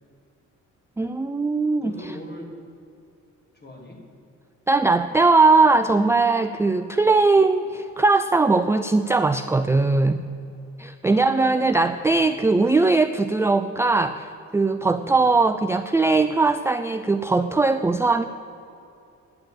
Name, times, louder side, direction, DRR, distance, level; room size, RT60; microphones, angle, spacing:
voice 1, 1.0-1.9 4.7-10.2 10.8-18.2, right 3 dB, 10° right, 9 dB, 0.4 m, -20 dB
voice 2, 1.8-2.5 3.5-4.0 11.0-11.8 12.0-12.2 14.9-15.2, left 1 dB, 35° left, 0 dB, 3.2 m, -41 dB
10.5 x 7.8 x 9.0 m, 2.7 s
cardioid pair, 90°, 30 cm